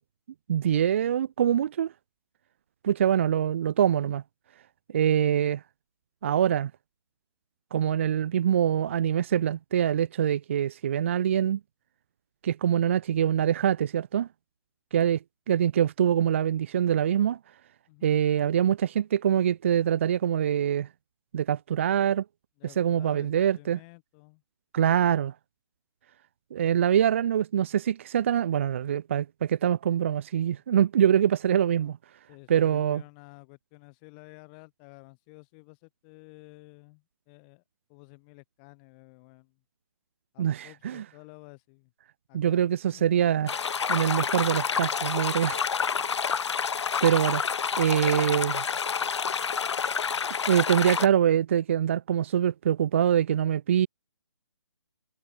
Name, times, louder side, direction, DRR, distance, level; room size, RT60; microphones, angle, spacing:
voice 1, 0.5-1.9 2.8-4.2 4.9-5.6 6.2-6.7 7.7-11.6 12.4-14.3 14.9-15.2 15.5-17.4 18.0-20.9 21.3-22.2 22.8-23.8 24.7-25.3 26.5-32.0 32.5-33.0 40.4-41.0 42.3-43.6 43.9-45.6 47.0-47.4 47.8-48.6 50.5-53.9, right 9 dB, 25° right, 0.5 m, -24 dB
voice 2, 17.9-18.2 22.6-24.4 30.5-30.6 31.8-31.9 32.3-37.6 37.9-39.6 40.3-41.9 42.3-42.6 42.9-43.0, left 33 dB, 20° left, 4.8 m, -52 dB
sound 1, 43.5-51.1, left 6 dB, 70° left, 0.7 m, -28 dB
hypercardioid pair, 165°, 15 cm